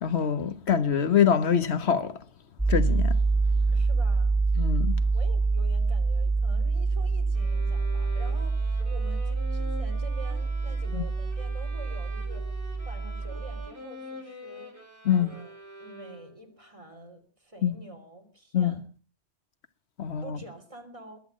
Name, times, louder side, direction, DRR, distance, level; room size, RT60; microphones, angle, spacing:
voice 1, 0.0-2.2 2.7-3.2 4.6-5.0 10.9-11.0 15.0-15.3 17.6-17.7 18.5-18.8 20.0-20.4, left 8 dB, 80° left, 1.4 m, -24 dB
sound 1, 2.6-13.7, right 3 dB, 5° right, 0.6 m, -26 dB
voice 2, 3.7-4.4 5.1-12.4 12.8-14.7 15.1-18.8 20.2-21.2, right 1 dB, 30° right, 3.5 m, -47 dB
sound 2, 7.3-16.5, left 1 dB, 50° right, 4.9 m, -45 dB
21.0 x 9.3 x 7.3 m
omnidirectional pair, 1.1 m